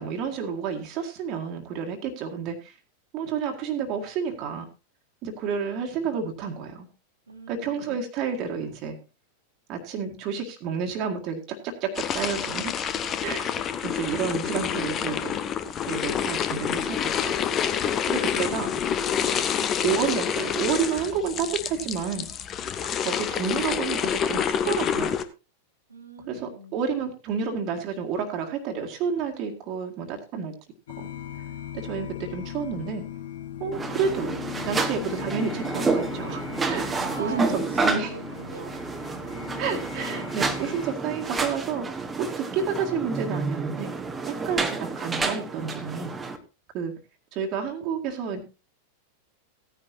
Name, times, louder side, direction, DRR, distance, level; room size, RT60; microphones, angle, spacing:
voice 1, 0.0-2.8 3.1-4.7 5.2-6.9 7.5-9.0 9.7-12.9 13.2-15.4 15.9-17.4 18.1-18.7 19.5-22.3 23.0-25.1 26.2-30.5 31.0-31.1 31.7-33.1 33.6-34.4 34.6-38.1 39.6-43.9 44.3-46.1 46.7-46.9 47.3-48.4, right 6 dB, 40° right, 3 dB, 1.9 m, -30 dB
voice 2, 7.3-8.0 18.3-18.7 25.9-26.8 37.0-38.8, right 2 dB, 80° right, 2 dB, 2.2 m, -41 dB
sound 1, 11.9-25.2, left 8 dB, 30° left, 1.0 m, -28 dB
sound 2, 30.9-40.9, left 11 dB, 60° left, 0.9 m, -39 dB
sound 3, 33.7-46.4, right 4 dB, 15° right, 1.4 m, -30 dB
16.5 x 10.0 x 2.7 m, 0.29 s
figure-of-eight pair, 90°, 0 cm